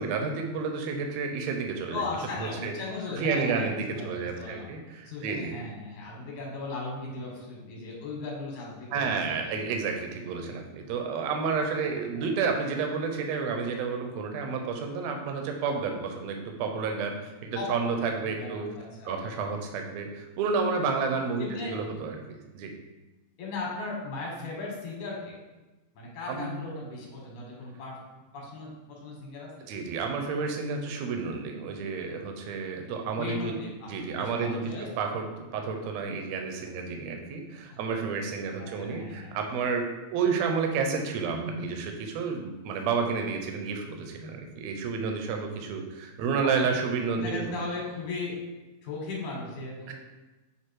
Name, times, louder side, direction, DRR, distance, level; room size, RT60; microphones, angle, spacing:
voice 1, 0.0-2.0 2.4-2.7 3.1-5.6 8.9-18.7 19.0-22.7 26.3-26.6 29.7-33.5 33.9-34.7 35.0-47.4 49.9-50.0, right 5 dB, 75° right, 4 dB, 1.9 m, -30 dB
voice 2, 1.9-4.7 5.0-9.1 11.8-12.3 17.5-17.7 18.2-19.2 21.4-21.7 23.4-25.4 25.9-28.0 28.3-29.7 33.1-34.9 37.7-37.8 38.6-39.3 47.1-48.4 48.8-49.9, left 3 dB, 90° left, -3 dB, 3.0 m, -37 dB
7.8 x 3.2 x 4.6 m, 1.1 s
omnidirectional pair, 3.3 m